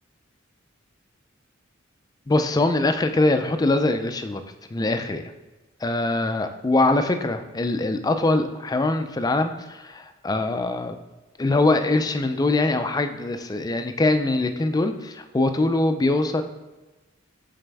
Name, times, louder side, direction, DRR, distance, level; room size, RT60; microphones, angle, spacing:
voice 1, 2.3-4.4 4.7-5.3 5.8-11.0 11.4-16.4, left 2 dB, 20° left, 8 dB, 0.4 m, -23 dB
7.5 x 4.1 x 3.4 m, 1.1 s
head